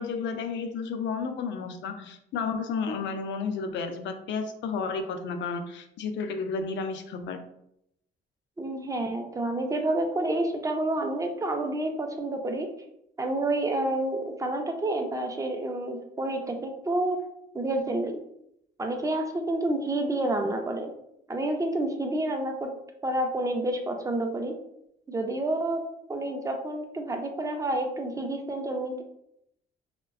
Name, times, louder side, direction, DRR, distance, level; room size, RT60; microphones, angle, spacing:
voice 1, 0.0-7.4, left 5 dB, 65° left, 7 dB, 0.4 m, -32 dB
voice 2, 8.6-12.7 13.2-17.2 17.5-18.2 18.8-20.9 21.3-22.7 23.0-24.5 25.1-25.8 26.1-29.0, right 1 dB, 15° right, 4 dB, 0.4 m, -29 dB
2.5 x 2.1 x 2.3 m, 0.78 s
cardioid pair, 90°, 20 cm